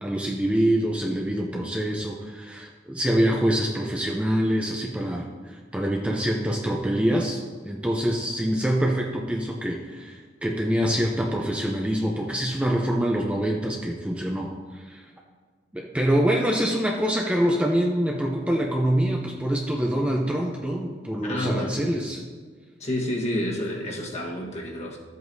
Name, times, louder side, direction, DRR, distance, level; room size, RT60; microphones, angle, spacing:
voice 1, 0.0-15.0 15.7-22.2, equal, 5° right, -1 dB, 0.6 m, -25 dB
voice 2, 21.2-21.8 22.8-25.0, left 1 dB, 35° left, -1 dB, 1.4 m, -29 dB
13.0 x 7.8 x 2.7 m, 1.5 s
head